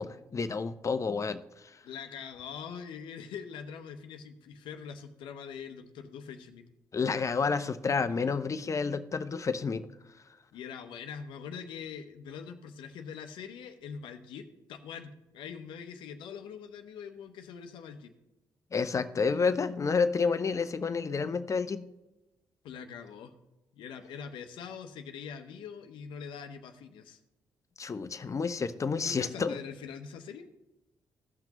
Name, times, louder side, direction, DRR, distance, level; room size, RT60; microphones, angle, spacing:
voice 1, 0.0-1.8 6.9-9.8 18.7-21.9 27.8-29.5, left 5 dB, 40° left, 11 dB, 0.7 m, -30 dB
voice 2, 1.8-6.7 10.5-18.1 22.6-23.3 23.7-27.2 29.0-30.5, left 7 dB, 75° left, 7 dB, 0.8 m, -43 dB
15.5 x 5.9 x 2.9 m, 1.0 s
supercardioid pair, 50°, 8 cm